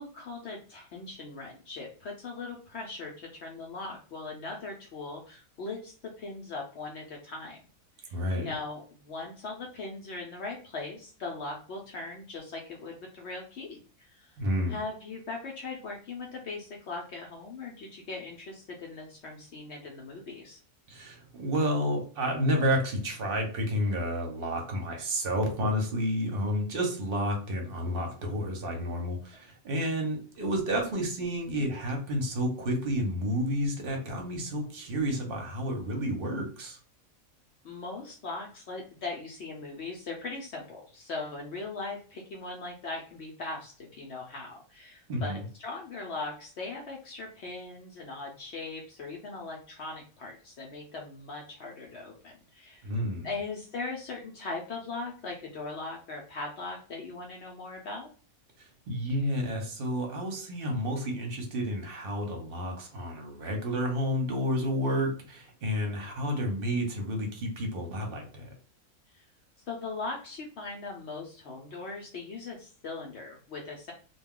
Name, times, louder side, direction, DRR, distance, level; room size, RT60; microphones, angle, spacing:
voice 1, 0.0-7.6 8.0-14.4 14.7-20.6 37.6-52.9 53.2-58.1 69.1-69.2 69.7-73.9, left 3 dB, 65° left, -1 dB, 0.8 m, -39 dB
voice 2, 8.1-8.5 14.4-14.8 20.9-36.8 45.1-45.4 52.8-53.3 58.6-68.5, equal, 50° right, 2 dB, 0.8 m, -30 dB
2.3 x 2.2 x 3.5 m, 0.39 s
omnidirectional pair, 1.4 m